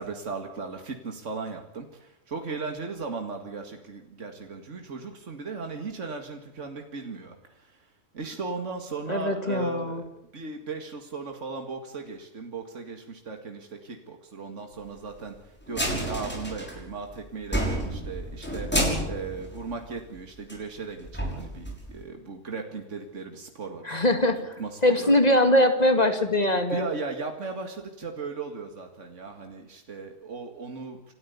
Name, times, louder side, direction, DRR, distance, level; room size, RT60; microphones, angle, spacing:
voice 1, 0.0-7.9 8.1-10.0 10.3-18.7 19.1-24.3 24.6-25.2 26.7-31.1, right 4 dB, 75° right, 4 dB, 2.4 m, -37 dB
voice 2, 9.1-10.0 23.9-24.5 24.8-26.9, left 1 dB, 30° left, 8 dB, 2.4 m, -22 dB
sound 1, 15.7-17.1 17.4-20.2 20.5-20.6 21.0-22.0, equal, 10° left, 5.9 m, -30 dB
28.5 x 13.5 x 8.4 m, 0.88 s
omnidirectional pair, 1.3 m